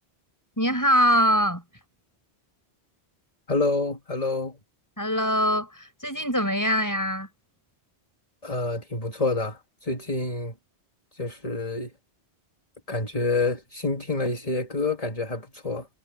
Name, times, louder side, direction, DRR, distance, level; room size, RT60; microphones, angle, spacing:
voice 1, 0.6-1.6 5.0-7.3, equal, 15° left, 5.9 m, -23 dB
voice 2, 3.5-4.6 8.4-10.5 11.1-11.9 12.9-15.9, left 3 dB, 35° left, 2.3 m, -28 dB
omnidirectional pair, 1.1 m